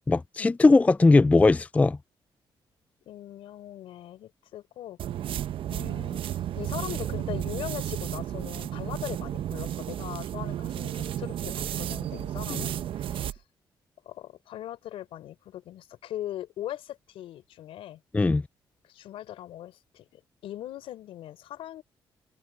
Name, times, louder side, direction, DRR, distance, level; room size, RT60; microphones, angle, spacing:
voice 1, 0.1-2.0 12.5-12.6 18.1-18.4, left 3 dB, 15° left, 0.3 m, -19 dB
voice 2, 3.1-5.0 5.7-13.4 14.0-18.0 18.9-21.8, left 12 dB, 85° left, 4.6 m, -40 dB
sound 1, 5.0-13.4, right 11 dB, 70° right, 0.8 m, -33 dB
cardioid pair, 80°, 9 cm